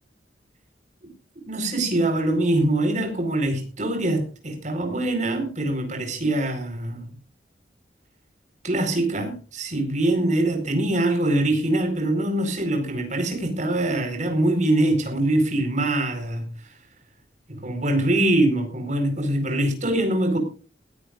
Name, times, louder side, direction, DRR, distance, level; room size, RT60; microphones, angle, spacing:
voice 1, 1.4-7.1 8.6-16.7 17.5-20.4, right 1 dB, 45° right, 5 dB, 4.7 m, -23 dB
20.5 x 14.5 x 2.5 m, 0.35 s
head